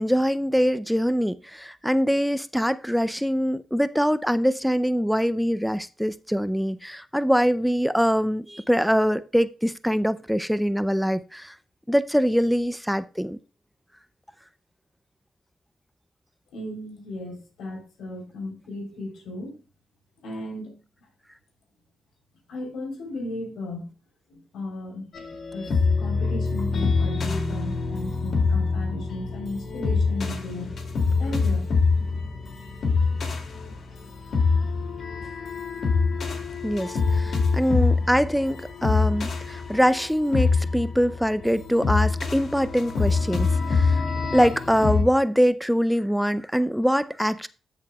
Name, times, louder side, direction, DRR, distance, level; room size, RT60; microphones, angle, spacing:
voice 1, 0.0-11.6 11.9-13.4 36.6-44.0 44.3-47.5, equal, ahead, 0.4 m, -23 dB
voice 2, 16.5-19.5 20.2-20.7 22.5-23.9 24.3-25.1 25.5-30.7 31.2-31.7, left 1 dB, 85° left, 3.5 m, -35 dB
sound 1, 25.1-45.0, left 4 dB, 65° left, 2.5 m, -25 dB
13.0 x 6.7 x 2.3 m
cardioid pair, 80°, 0 cm